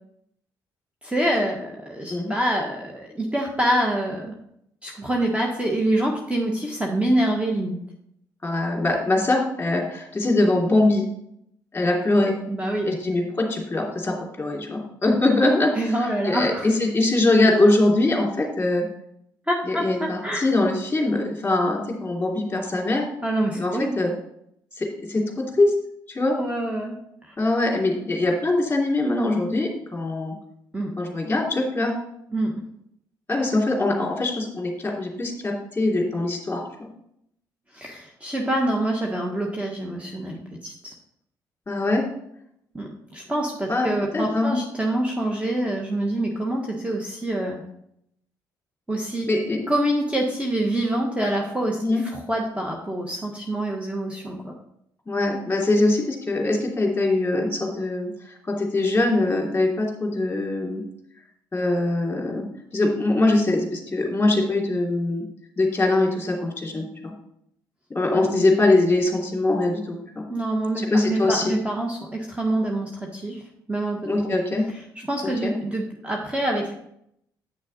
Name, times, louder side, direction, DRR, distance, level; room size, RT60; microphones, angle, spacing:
voice 1, 1.0-4.3 4.8-7.8 12.5-13.0 15.7-16.7 19.5-19.8 20.2-20.5 23.2-24.0 26.4-27.0 30.7-30.9 32.3-32.5 37.7-40.9 42.7-47.6 48.9-49.3 49.7-54.5 68.2-68.4 70.3-73.4 73.7-74.0 75.1-76.7, right 1 dB, 10° right, -1 dB, 1.5 m, -26 dB
voice 2, 8.4-11.0 11.7-12.3 12.8-15.7 16.2-18.8 19.7-23.0 23.6-24.1 24.8-25.7 26.1-26.4 27.4-30.3 31.0-31.9 33.3-36.9 41.7-42.0 43.7-44.6 49.3-49.6 51.8-52.0 55.1-58.1 58.5-60.8 61.5-62.4 62.7-65.2 65.6-67.1 67.9-70.2 70.8-71.6 74.0-74.6 75.2-75.5, left 2 dB, 20° left, -1 dB, 2.8 m, -22 dB
8.6 x 6.3 x 4.1 m, 0.73 s
hypercardioid pair, 45°, 10 cm